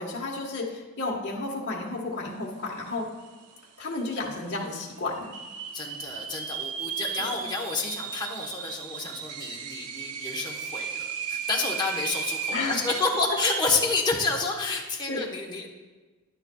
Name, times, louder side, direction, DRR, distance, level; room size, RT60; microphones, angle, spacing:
voice 1, 0.0-3.0 3.8-5.3 7.2-7.3 12.5-12.9 15.1-15.2, left 2 dB, 50° left, -4 dB, 1.4 m, -32 dB
sound 1, 2.9-3.0 3.2-3.8 4.3-4.4 5.1-13.9, right 7 dB, 85° right, 0.7 m, -35 dB
voice 2, 5.7-15.7, left 3 dB, 20° left, -2 dB, 1.2 m, -29 dB
11.0 x 9.8 x 2.4 m, 1.2 s
head